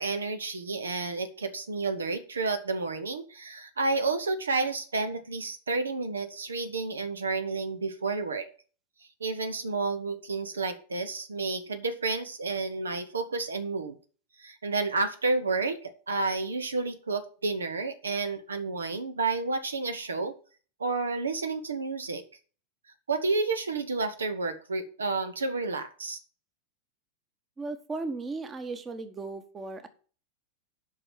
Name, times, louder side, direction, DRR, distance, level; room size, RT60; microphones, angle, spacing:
voice 1, 0.0-8.5 9.2-14.0 14.4-20.3 20.8-22.2 23.1-26.2, right 3 dB, 70° right, 10 dB, 1.0 m, -30 dB
voice 2, 27.6-29.9, right 3 dB, 20° right, 10 dB, 1.3 m, -36 dB
8.0 x 5.7 x 7.3 m, 0.40 s
figure-of-eight pair, 90°, 0 cm